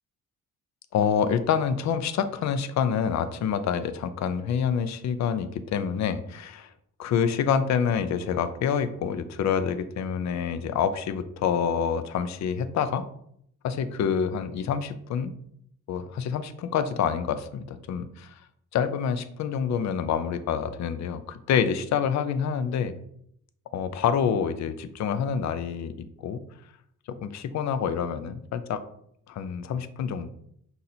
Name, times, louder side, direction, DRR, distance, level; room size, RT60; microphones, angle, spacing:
voice 1, 0.9-6.7 7.0-13.1 13.6-15.3 15.9-18.4 18.7-22.9 23.7-25.9 26.2-26.4 27.1-28.8 29.3-30.3, left 7 dB, 55° left, 11 dB, 0.5 m, -27 dB
5.7 x 2.7 x 2.7 m, 0.70 s
cardioid pair, 90°, 35 cm